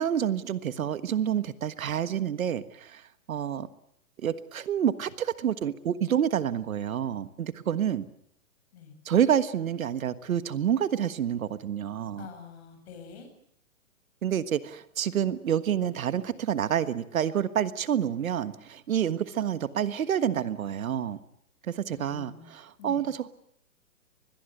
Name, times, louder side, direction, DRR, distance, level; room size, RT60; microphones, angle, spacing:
voice 1, 0.0-3.0 3.3-3.7 4.2-8.1 9.0-12.3 14.2-21.2 21.7-23.3, right 9 dB, 70° right, 14 dB, 1.5 m, -28 dB
voice 2, 12.2-13.3 21.9-22.5 22.8-23.0, left 6 dB, 45° left, 6 dB, 7.8 m, -46 dB
24.0 x 21.0 x 8.0 m, 0.72 s
hypercardioid pair, 145°, 43 cm